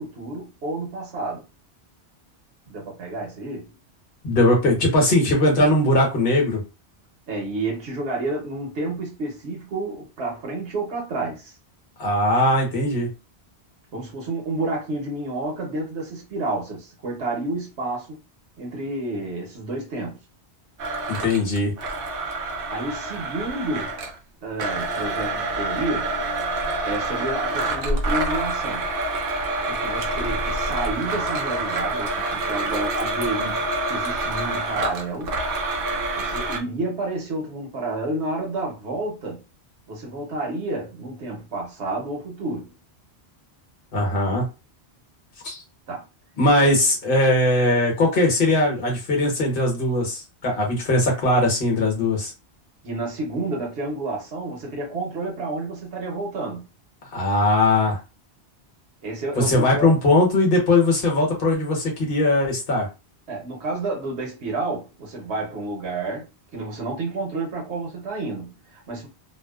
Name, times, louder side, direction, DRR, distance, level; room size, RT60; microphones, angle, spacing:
voice 1, 0.0-1.4 2.7-3.7 7.3-11.6 13.9-18.2 18.6-20.2 22.6-24.0 24.4-26.1 26.8-28.9 29.7-33.6 33.9-35.4 36.1-39.4 39.9-42.7 45.9-46.0 52.8-56.7 59.0-59.9 63.3-69.1, right 2 dB, 90° right, 1.1 m, -30 dB
voice 2, 4.2-6.6 12.0-13.1 21.1-21.7 43.9-44.4 45.4-45.6 46.4-52.3 57.1-58.0 59.4-62.9, left 1 dB, 60° left, 1.1 m, -20 dB
Domestic sounds home sounds, 20.8-24.2 24.6-36.6, right 2 dB, 65° right, 0.7 m, -27 dB
2.7 x 2.1 x 2.2 m
omnidirectional pair, 1.1 m